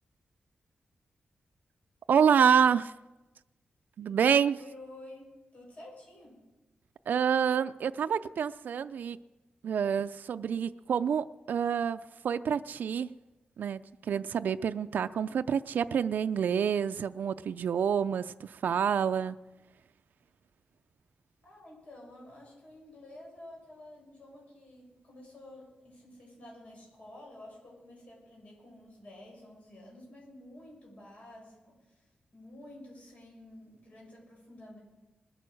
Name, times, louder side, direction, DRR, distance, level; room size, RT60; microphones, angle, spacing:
voice 1, 2.1-2.9 4.0-4.6 7.1-9.2 9.6-13.1 13.6-19.4, right 7 dB, 75° right, 10 dB, 0.4 m, -27 dB
voice 2, 4.6-6.5 21.4-34.8, left 1 dB, 45° left, -2 dB, 6.9 m, -51 dB
20.0 x 9.1 x 6.3 m, 1.1 s
wide cardioid pair, 150°, 3 cm